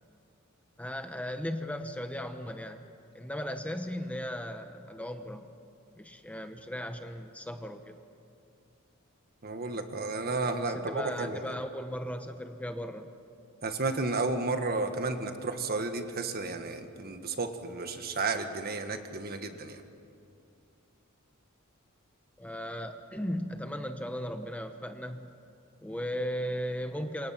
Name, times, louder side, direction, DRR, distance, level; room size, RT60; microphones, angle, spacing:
voice 1, 0.8-2.9 3.1-5.5 6.0-8.0 10.5-13.1 22.4-25.3 25.8-27.3, equal, 5° left, 7 dB, 0.9 m, -37 dB
voice 2, 9.4-11.4 13.6-19.8, right 3 dB, 45° right, 7 dB, 1.7 m, -32 dB
28.5 x 26.5 x 5.9 m, 2.5 s
head